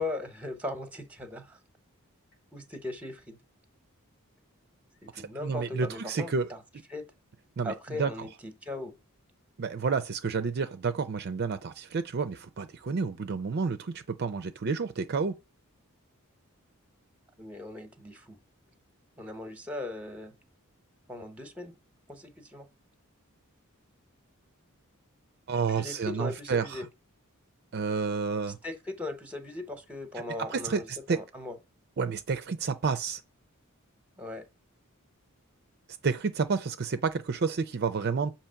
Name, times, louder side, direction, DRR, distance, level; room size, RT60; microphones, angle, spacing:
voice 1, 0.0-1.6 2.5-3.4 5.2-6.6 6.9-7.1 7.6-8.9 17.4-18.4 19.2-20.3 21.1-21.7 22.1-22.7 25.7-26.9 28.6-31.6 34.2-34.4, left 2 dB, 5° right, 1.0 m, -38 dB
voice 2, 5.1-6.5 7.6-8.3 9.6-15.3 25.5-26.8 27.7-28.6 30.4-31.2 32.0-33.2 36.0-38.3, right 5 dB, 50° right, 0.5 m, -30 dB
7.1 x 2.9 x 5.7 m
head